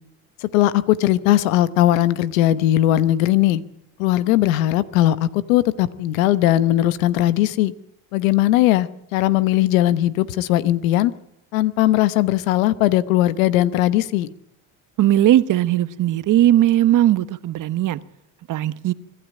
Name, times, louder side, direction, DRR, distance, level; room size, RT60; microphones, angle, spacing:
voice 1, 0.5-3.6 4.0-7.7 8.1-11.1 11.5-14.3, left 14 dB, 90° left, 15 dB, 1.1 m, -18 dB
voice 2, 15.0-18.0 18.5-18.9, right 13 dB, 50° right, 15 dB, 1.0 m, -18 dB
25.0 x 12.5 x 9.3 m, 0.80 s
supercardioid pair, 90°, 39 cm